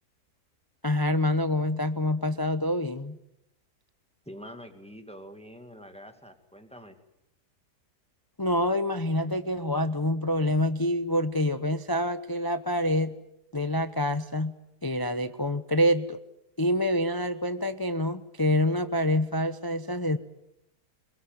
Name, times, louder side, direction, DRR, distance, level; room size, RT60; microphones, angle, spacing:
voice 1, 0.8-3.2 8.4-13.1 13.5-14.5 14.8-16.2 16.6-20.2, left 1 dB, 25° left, 10 dB, 0.5 m, -26 dB
voice 2, 4.3-7.0, equal, 5° left, 6 dB, 2.2 m, -45 dB
23.0 x 22.0 x 9.3 m, 0.85 s
omnidirectional pair, 1.8 m